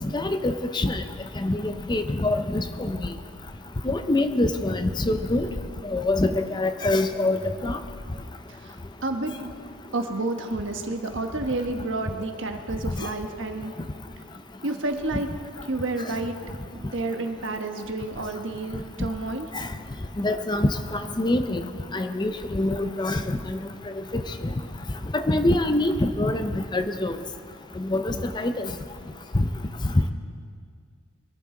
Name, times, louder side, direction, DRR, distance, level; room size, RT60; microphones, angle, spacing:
voice 1, 0.0-1.0 1.4-3.0 3.8-5.5 5.8-7.8 19.5-19.7 20.2-21.6 21.9-23.6 24.1-24.5 25.1-27.2 27.8-28.7 29.3-29.5, left 2 dB, 20° left, 8 dB, 0.5 m, -25 dB
voice 2, 9.0-9.5 9.9-13.7 14.6-15.3 15.7-16.4 16.7-19.5, right 2 dB, 60° right, 5 dB, 1.2 m, -30 dB
23.0 x 13.5 x 3.8 m, 2.1 s
head